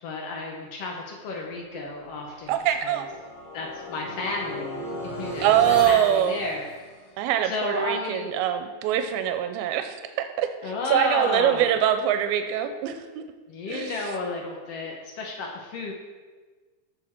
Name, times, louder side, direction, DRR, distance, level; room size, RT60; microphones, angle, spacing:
voice 1, 0.0-2.5 2.8-3.0 3.5-6.8 7.4-8.3 10.6-11.6 13.5-15.9, left 3 dB, 85° left, 0 dB, 1.3 m, -32 dB
sound 1, 2.0-7.2, left 2 dB, 40° left, 3.6 m, -37 dB
voice 2, 2.5-3.1 5.4-6.4 7.2-13.2 13.7-14.1, right 10 dB, 90° right, 8 dB, 2.5 m, -24 dB
13.5 x 6.2 x 4.4 m, 1.4 s
omnidirectional pair, 4.3 m